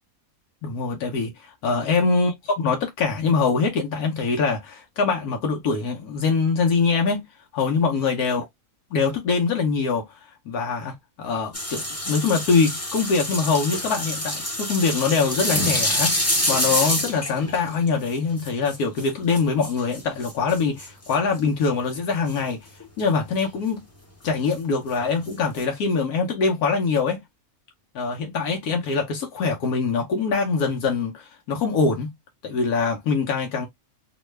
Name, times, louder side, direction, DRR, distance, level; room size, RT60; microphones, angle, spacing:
voice 1, 0.6-7.3 7.5-8.5 8.9-22.6 23.0-23.8 24.2-27.2 27.9-32.1 32.4-33.7, left 4 dB, 85° left, 1.2 m, -23 dB
sound 1, 11.5-21.4 22.3-22.4 22.8-23.0 23.4-23.5 24.3-24.4 25.3-25.6, left 1 dB, 15° left, 0.6 m, -27 dB
3.1 x 2.2 x 3.1 m
omnidirectional pair, 1.5 m